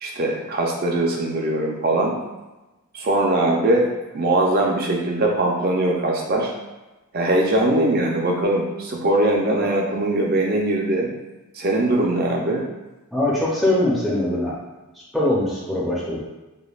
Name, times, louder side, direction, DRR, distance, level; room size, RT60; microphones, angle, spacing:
voice 1, 0.0-2.1 2.9-3.9 4.1-6.5 7.1-11.1 11.6-12.6, right 1 dB, 45° right, 0 dB, 0.5 m, -21 dB
voice 2, 13.1-14.5 15.1-16.2, left 1 dB, ahead, -7 dB, 0.6 m, -21 dB
5.2 x 2.2 x 2.4 m, 1.1 s
head